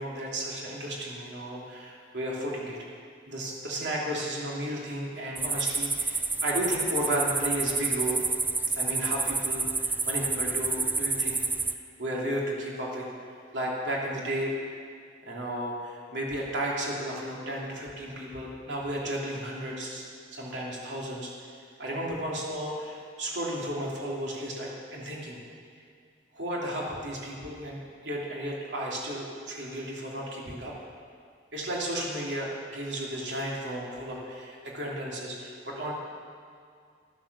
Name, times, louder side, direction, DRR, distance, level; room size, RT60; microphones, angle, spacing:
voice 1, 0.0-2.8 3.3-8.2 8.7-11.4 11.6-13.1 13.5-14.5 15.2-20.0 20.3-21.5 21.8-25.4 26.3-30.7 31.5-35.9, right 1 dB, 70° right, -4 dB, 3.0 m, -33 dB
sound 1, 5.4-11.7, right 3 dB, 10° right, 0.4 m, -29 dB
12.5 x 9.8 x 6.9 m, 2.2 s
head